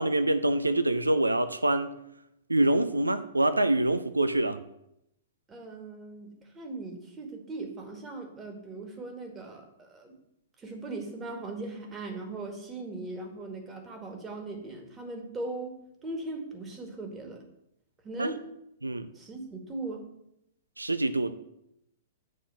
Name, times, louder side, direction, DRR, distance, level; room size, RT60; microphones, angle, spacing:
voice 1, 0.0-2.0 2.5-4.6 18.2-18.3 18.8-19.1 20.8-21.4, right 1 dB, 80° right, 11 dB, 0.4 m, -25 dB
voice 2, 5.5-10.1 10.6-17.5 18.0-18.4 19.1-20.1, right 2 dB, 15° right, 3 dB, 1.7 m, -39 dB
8.4 x 4.3 x 6.8 m, 0.80 s
figure-of-eight pair, 110°, 0 cm